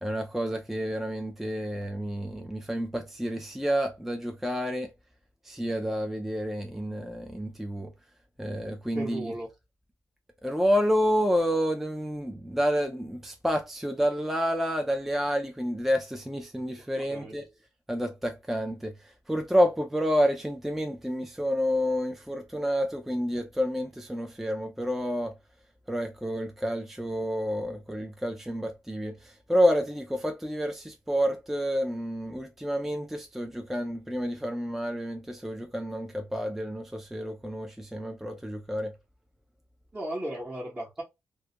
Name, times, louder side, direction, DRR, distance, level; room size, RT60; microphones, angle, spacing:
voice 1, 0.0-4.9 5.4-7.9 8.4-9.3 10.4-17.5 17.9-25.3 25.9-38.9, equal, 5° right, 0.3 m, -29 dB
voice 2, 8.9-9.5 17.1-17.4 39.9-41.0, right 1 dB, 25° right, 0.8 m, -35 dB
2.3 x 2.1 x 2.7 m
cardioid pair, 95°, 6 cm